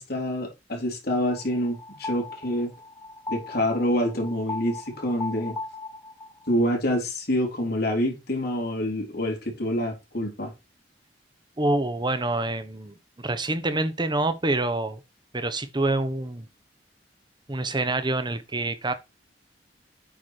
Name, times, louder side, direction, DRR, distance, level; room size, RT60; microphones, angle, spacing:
voice 1, 0.0-2.7 3.3-5.6 6.5-10.5, equal, 60° left, 3.8 m, -27 dB
sound 1, 1.3-6.5, left 3 dB, 20° left, 1.3 m, -38 dB
voice 2, 11.6-15.0 15.3-16.5 17.5-18.9, right 2 dB, 25° right, 1.1 m, -26 dB
8.8 x 4.7 x 4.8 m
head